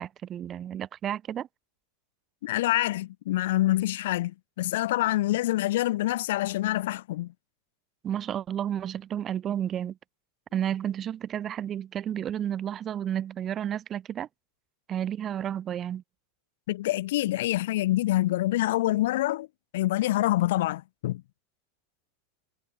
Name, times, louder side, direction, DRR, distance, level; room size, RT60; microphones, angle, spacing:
voice 1, 0.0-1.5 8.0-10.0 10.5-14.3 14.9-16.0, right 10 dB, 25° right, 0.7 m, -31 dB
voice 2, 2.4-7.3 16.7-19.5 19.7-21.2, left 16 dB, 55° left, 0.8 m, -26 dB
figure-of-eight pair, 90°, 0 cm